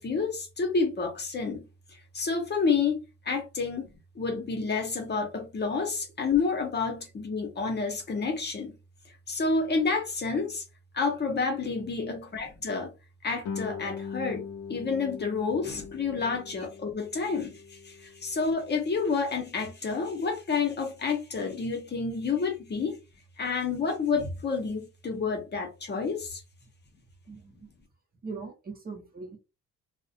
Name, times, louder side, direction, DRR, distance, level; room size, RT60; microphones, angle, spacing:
voice 1, 0.0-1.6 1.9-3.0 3.2-8.7 9.3-10.6 10.9-12.9 13.2-14.4 14.7-23.0 23.4-26.4, left 4 dB, 35° left, 0.7 m, -29 dB
Guitar, 13.4-18.8, left 6 dB, 80° left, 0.6 m, -41 dB
voice 2, 27.3-27.7 28.2-29.4, right 4 dB, 30° right, 0.7 m, -40 dB
2.3 x 2.1 x 2.6 m
cardioid pair, 90°, 30 cm